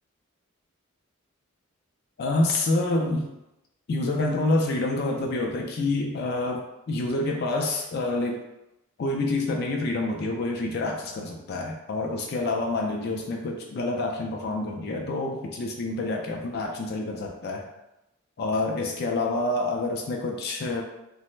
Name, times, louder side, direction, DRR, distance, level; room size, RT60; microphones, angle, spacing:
voice 1, 2.2-3.3 3.9-8.4 9.0-17.6 18.4-20.8, left 2 dB, 50° left, 1 dB, 0.3 m, -27 dB
3.1 x 2.0 x 3.0 m, 0.91 s
head